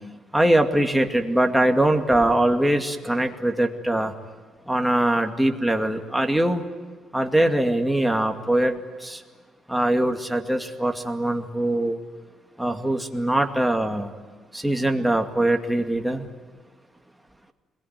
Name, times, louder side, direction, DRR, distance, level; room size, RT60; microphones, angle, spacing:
voice 1, 0.3-4.1 4.7-6.6 7.1-9.2 9.7-12.0 12.6-14.1 14.5-16.2, right 1 dB, 5° right, 4 dB, 2.3 m, -22 dB
27.5 x 21.5 x 9.5 m, 1.5 s
cardioid pair, 120°, 0 cm